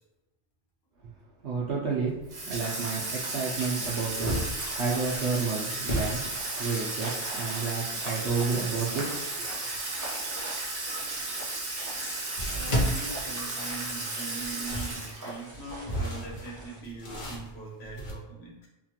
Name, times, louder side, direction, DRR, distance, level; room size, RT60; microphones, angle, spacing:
voice 1, 1.4-6.2 6.6-9.1, right 5 dB, 70° right, -4 dB, 0.8 m, -31 dB
sound 1, 1.8-2.0 2.4-2.5 3.0-5.4 5.8-6.9 11.1-11.2 12.4-13.9 14.4-18.1, equal, 45° left, 0.8 m, -34 dB
Water tap faucet / Sink (filling or washing), 2.3-15.4, right 2 dB, 90° right, 1.1 m, -34 dB
sound 2, 3.8-16.8, right 1 dB, 25° right, 0.4 m, -44 dB
voice 2, 12.5-18.7, right 4 dB, 65° left, -4 dB, 1.2 m, -41 dB
2.9 x 2.3 x 2.8 m, 1.0 s
omnidirectional pair, 1.2 m